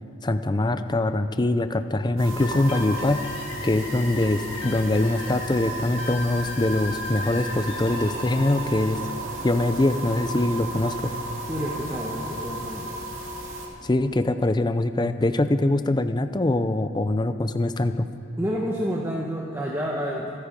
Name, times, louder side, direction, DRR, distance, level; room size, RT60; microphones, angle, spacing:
voice 1, 0.2-3.2 3.6-9.0 9.4-11.1 13.8-18.1, left 2 dB, 20° left, 10 dB, 0.5 m, -23 dB
sound 1, 2.2-13.7, right 1 dB, 85° right, 2.5 m, -34 dB
sound 2, 2.4-10.0, left 3 dB, 55° left, 2.2 m, -39 dB
voice 2, 11.5-12.9 18.4-20.3, equal, 15° right, -2 dB, 1.1 m, -29 dB
25.0 x 9.8 x 5.2 m, 2.5 s
head